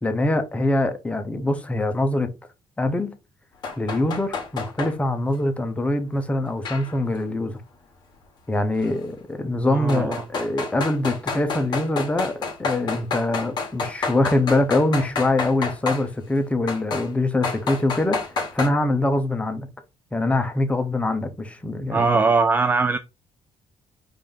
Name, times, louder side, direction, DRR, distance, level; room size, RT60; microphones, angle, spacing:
voice 1, 0.0-2.3 2.8-3.1 3.8-7.6 8.5-19.7 20.1-22.1, left 2 dB, 10° left, 0.7 m, -24 dB
sound 1, 3.6-4.9 6.6-7.2 8.8-8.9 9.9-16.0 16.7-17.1 17.4-18.7, left 4 dB, 45° left, 1.5 m, -29 dB
voice 2, 9.7-10.2 21.9-23.0, right 4 dB, 20° right, 0.3 m, -20 dB
5.2 x 2.6 x 3.7 m
cardioid pair, 135°, 11 cm